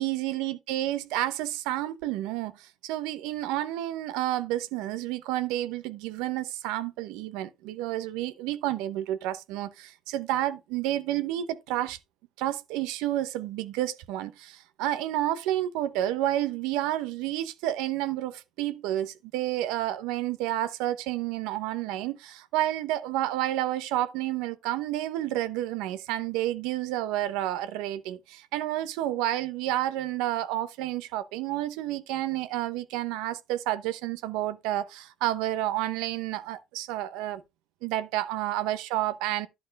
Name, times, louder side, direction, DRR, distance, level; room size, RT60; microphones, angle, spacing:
voice 1, 0.0-12.0 12.4-37.4 37.8-39.5, right 14 dB, 85° right, 0.9 m, -30 dB
11.0 x 4.5 x 5.3 m
cardioid pair, 180°, 0 cm